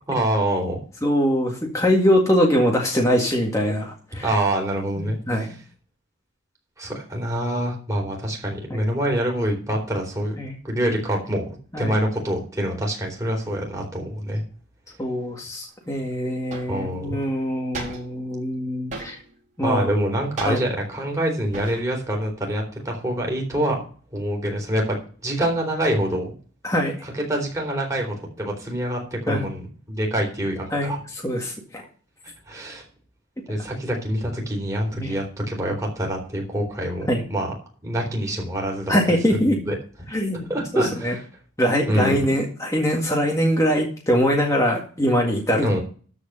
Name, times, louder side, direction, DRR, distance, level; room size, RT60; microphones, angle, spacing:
voice 1, 0.1-0.8 4.2-5.5 6.8-10.4 10.6-14.4 16.7-17.2 19.6-23.8 24.1-26.3 27.0-31.0 32.5-32.8 33.5-37.5 37.8-38.9 39.6-39.8 40.5-41.2 41.9-42.3 45.6-45.8, right 1 dB, 15° right, 0 dB, 3.8 m, -26 dB
voice 2, 1.0-4.3 5.0-5.5 8.7-8.8 10.4-10.6 11.7-12.0 15.0-19.2 19.6-19.9 20.5-20.6 26.6-26.9 29.3-29.5 30.7-30.9 31.2-31.9 34.9-35.1 37.1-37.2 38.9-39.6 40.1-41.1 41.6-45.8, equal, 15° left, -1 dB, 1.8 m, -22 dB
sound 1, 15.8-15.9 16.5-16.9 17.7-18.3 18.9-19.4 20.4-20.9 21.5-22.0 22.3-23.2, right 3 dB, 35° right, 4.7 m, -36 dB
13.0 x 5.0 x 6.6 m, 0.41 s
head